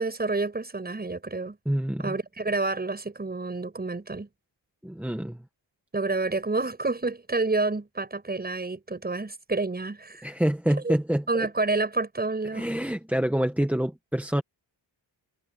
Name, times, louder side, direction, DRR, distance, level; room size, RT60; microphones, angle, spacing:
voice 1, 0.0-1.6 2.0-4.3 5.9-10.3 10.8-10.9 11.3-12.7, right 3 dB, 20° right, 7.1 m, -29 dB
voice 2, 1.6-2.1 4.8-5.4 10.2-11.5 12.5-14.4, equal, 5° right, 1.3 m, -27 dB
wide cardioid pair, 140°, 45 cm